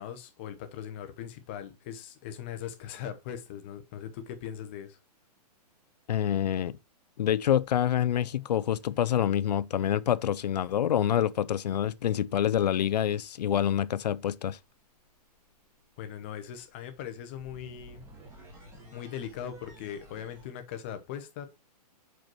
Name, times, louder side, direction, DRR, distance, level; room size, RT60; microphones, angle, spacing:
voice 1, 0.0-5.0 16.0-18.0 18.9-21.5, left 9 dB, 15° left, 0.6 m, -40 dB
sound 1, 5.7-6.0 7.2-9.3 11.2-20.5, right 1 dB, 10° right, 1.3 m, -56 dB
voice 2, 6.1-6.8 7.2-14.6, left 10 dB, 75° left, 0.5 m, -27 dB
5.1 x 4.5 x 6.0 m
hypercardioid pair, 175°, 21 cm